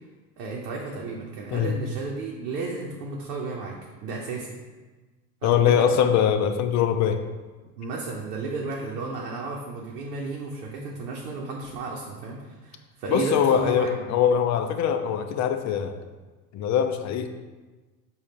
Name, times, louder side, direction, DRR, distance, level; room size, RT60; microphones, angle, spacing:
voice 1, 0.4-3.7 4.0-4.6 5.4-6.1 7.8-14.0, right 3 dB, 85° right, -2 dB, 0.8 m, -33 dB
voice 2, 5.4-7.2 13.1-16.0 16.5-17.3, left 8 dB, 40° left, 8 dB, 0.5 m, -22 dB
5.0 x 2.4 x 4.1 m, 1.3 s
hypercardioid pair, 85°, 47 cm